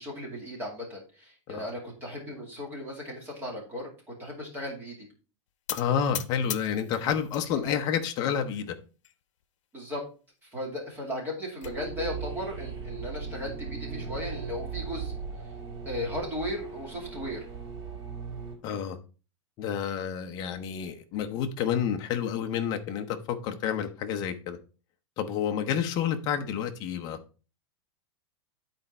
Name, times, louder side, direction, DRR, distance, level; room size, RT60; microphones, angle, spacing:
voice 1, 0.0-5.1 7.5-7.8 9.7-10.0 10.4-15.1 15.9-17.4, left 1 dB, 10° right, 2.4 m, -36 dB
sound 1, 5.7-7.5 7.8-8.5 9.0-9.1 9.4-9.5 9.9-10.0 11.1-11.7, left 11 dB, 80° left, 0.8 m, -39 dB
voice 2, 5.7-8.7 18.6-19.0 19.6-24.6 25.2-27.2, left 8 dB, 25° left, 0.8 m, -29 dB
sound 2, 11.6-18.6, right 6 dB, 60° right, 3.2 m, -38 dB
10.5 x 4.4 x 4.2 m
supercardioid pair, 170°, 16 cm